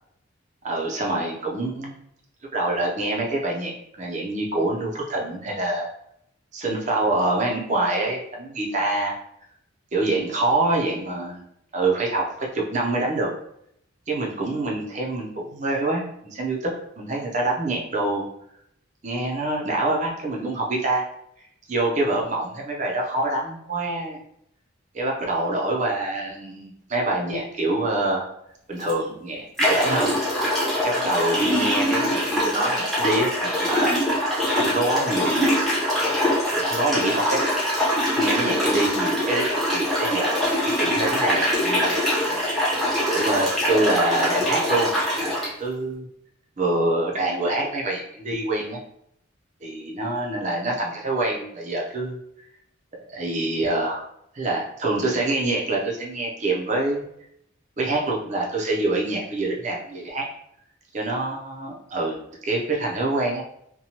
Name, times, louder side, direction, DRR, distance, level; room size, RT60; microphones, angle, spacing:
voice 1, 0.6-1.9 2.5-5.9 6.5-9.1 9.9-11.4 11.7-13.3 14.1-18.3 19.0-21.1 21.7-24.2 24.9-28.2 28.7-30.1 30.8-35.5 36.5-37.4 38.1-42.0 42.3-42.4 43.1-46.1 46.6-48.8 49.6-52.2 53.1-54.1 54.3-57.1 57.8-60.3 60.9-63.4, right 2 dB, 35° right, -1 dB, 0.5 m, -26 dB
sound 1, 28.8-28.9 29.6-45.5, equal, ahead, 0.7 m, -23 dB
2.9 x 2.2 x 2.8 m, 0.73 s
head